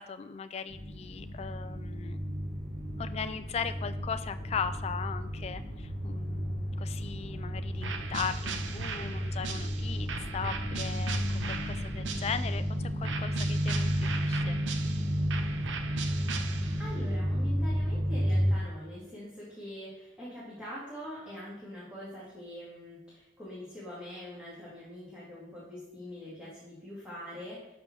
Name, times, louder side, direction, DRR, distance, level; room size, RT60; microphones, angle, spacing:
voice 1, 0.0-2.2 3.0-11.2 11.5-14.6, left 6 dB, 35° left, 10 dB, 0.3 m, -38 dB
sound 1, 0.7-18.5, equal, 25° right, 1.9 m, -32 dB
sound 2, 7.8-12.6 13.0-17.0, right 5 dB, 85° right, 0.6 m, -39 dB
voice 2, 16.8-27.7, left 1 dB, 5° right, -9 dB, 1.9 m, -43 dB
5.8 x 5.2 x 5.9 m, 0.94 s
head